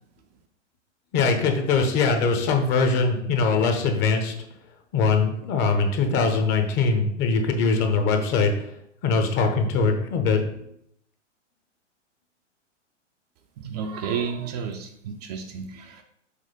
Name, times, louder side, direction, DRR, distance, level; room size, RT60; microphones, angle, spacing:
voice 1, 1.1-4.4 4.9-8.5 9.0-10.4, left 4 dB, 30° left, 5 dB, 1.0 m, -22 dB
voice 2, 13.6-16.0, right 6 dB, 35° right, 5 dB, 0.5 m, -31 dB
6.6 x 3.1 x 5.2 m, 0.73 s
figure-of-eight pair, 110°, 37 cm